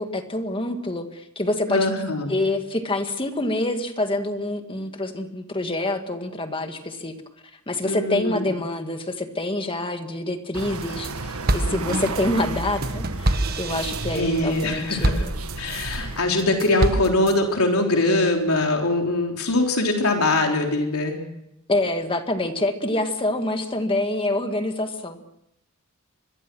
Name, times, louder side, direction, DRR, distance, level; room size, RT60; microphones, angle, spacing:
voice 1, 0.0-1.9 2.3-7.1 7.7-15.2 16.0-16.2 21.7-25.2, left 2 dB, 25° left, 6 dB, 2.0 m, -26 dB
voice 2, 1.7-2.3 7.8-8.4 14.1-15.3 15.6-21.2, left 2 dB, 85° left, 2 dB, 3.7 m, -22 dB
sound 1, 10.5-16.2, right 3 dB, 85° right, 1.6 m, -32 dB
sound 2, 10.6-11.1 11.5-16.0 16.4-17.4, right 1 dB, 45° right, 1.5 m, -26 dB
25.0 x 22.0 x 6.3 m, 0.83 s
head